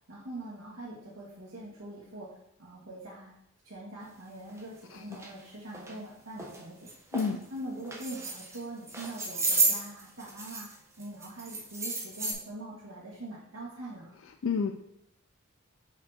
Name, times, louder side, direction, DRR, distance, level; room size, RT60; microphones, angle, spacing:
voice 1, 0.1-3.3 3.6-6.9 7.5-10.7 11.0-14.1, right 1 dB, 80° right, -7 dB, 1.9 m, -43 dB
sound 1, 4.5-4.6 5.1-5.3 5.7-5.9 6.4-6.6 6.9-7.3 7.8-8.6 8.9-10.7 11.0-12.3, right 3 dB, 15° right, 0.9 m, -31 dB
voice 2, 7.1-7.4 14.4-14.7, left 5 dB, 70° left, 5 dB, 0.4 m, -29 dB
5.7 x 5.2 x 4.3 m, 0.76 s
head